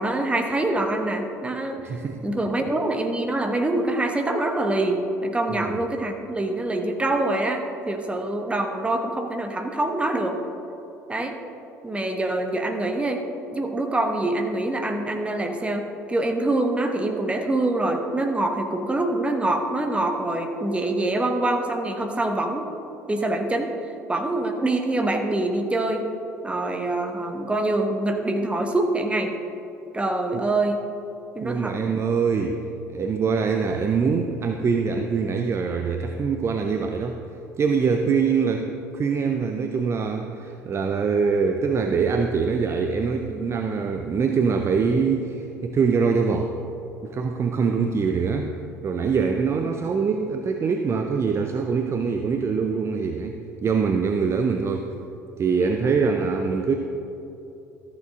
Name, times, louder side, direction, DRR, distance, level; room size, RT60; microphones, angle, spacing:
voice 1, 0.0-10.4 11.1-11.3 11.8-13.2 13.5-22.7 23.1-23.7 24.1-26.0 26.4-29.3 29.9-30.8 31.3-31.8, right 2 dB, 15° right, 4 dB, 1.0 m, -25 dB
voice 2, 1.8-2.2 2.6-2.7 5.5-5.7 30.3-30.4 31.4-32.6 32.9-37.2 37.6-46.6 47.0-48.6 48.8-54.9 55.4-56.7, right 5 dB, 30° right, 5 dB, 0.5 m, -24 dB
13.5 x 6.7 x 3.6 m, 2.9 s
figure-of-eight pair, 60°, 9 cm